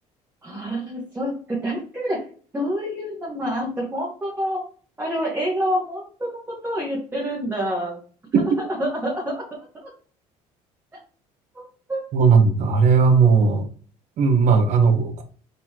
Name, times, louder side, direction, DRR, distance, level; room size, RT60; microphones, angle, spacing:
voice 1, 0.4-2.2 2.5-4.6 5.0-8.0 8.3-9.9 11.5-12.0, equal, 15° right, -4 dB, 1.4 m, -27 dB
voice 2, 12.1-13.6 14.2-15.2, right 5 dB, 55° right, 6 dB, 1.0 m, -17 dB
4.1 x 3.9 x 2.9 m, 0.43 s
cardioid pair, 105°, 14 cm